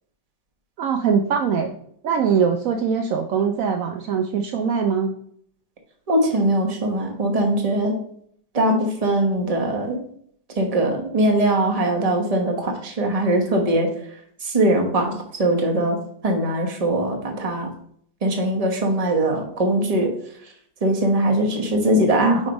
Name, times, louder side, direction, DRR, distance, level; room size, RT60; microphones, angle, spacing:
voice 1, 0.8-1.8 2.0-5.1, right 6 dB, 80° right, 4 dB, 0.7 m, -22 dB
voice 2, 6.1-7.9 8.5-10.0 10.6-13.9 14.4-15.1 15.4-16.0 16.2-17.7 18.2-20.1 20.8-22.4, right 1 dB, 25° right, 1 dB, 0.8 m, -21 dB
5.2 x 3.9 x 5.1 m, 0.65 s
omnidirectional pair, 2.0 m